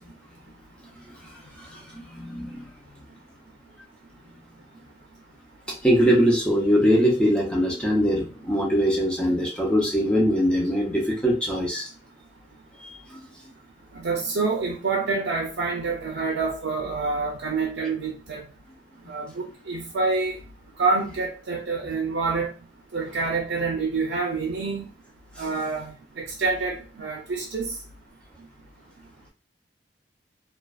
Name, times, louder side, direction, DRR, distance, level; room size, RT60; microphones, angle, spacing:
voice 1, 1.2-2.7 5.8-11.9 12.8-13.2 25.4-25.5, equal, 5° left, -3 dB, 0.6 m, -22 dB
voice 2, 13.9-18.5 19.1-20.4 20.8-22.5 22.9-24.9 25.4-27.7, right 4 dB, 80° right, 1 dB, 0.5 m, -27 dB
2.4 x 2.2 x 2.3 m, 0.32 s
head